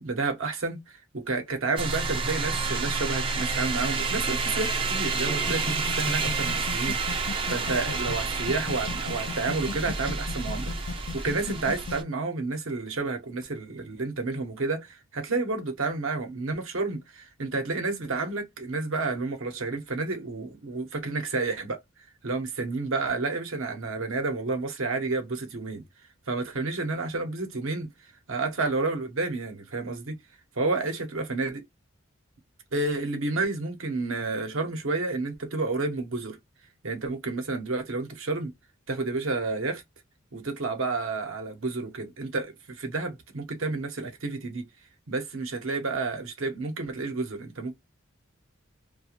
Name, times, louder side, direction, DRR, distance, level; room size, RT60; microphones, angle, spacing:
voice 1, 0.0-21.8 22.2-25.8 26.3-27.9 28.3-30.2 30.6-31.6 32.7-36.4 36.8-38.5 38.9-39.8 40.3-44.7 45.1-47.7, right 3 dB, 75° right, 0.8 m, -30 dB
sound 1, 1.8-12.0, right 4 dB, 25° right, 0.4 m, -29 dB
sound 2, 5.4-11.9, left 5 dB, 60° left, 0.3 m, -37 dB
2.4 x 2.2 x 2.8 m
head